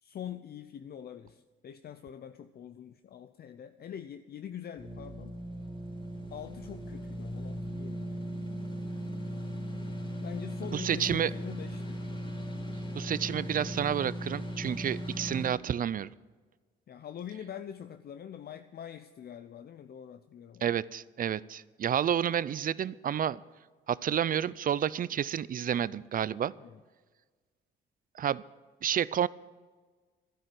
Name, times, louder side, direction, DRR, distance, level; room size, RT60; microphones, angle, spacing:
voice 1, 0.0-5.4 6.3-8.3 10.2-12.1 16.9-20.8 26.6-26.8, left 9 dB, 50° left, 10 dB, 0.7 m, -44 dB
sound 1, 4.8-15.5, equal, 25° left, 4.3 m, -38 dB
voice 2, 10.7-11.3 13.0-16.1 20.6-23.4 23.9-26.5 28.1-28.4 28.8-29.3, right 9 dB, 45° right, 20 dB, 0.5 m, -30 dB
12.5 x 11.0 x 7.7 m, 1.4 s
cardioid pair, 90°, 20 cm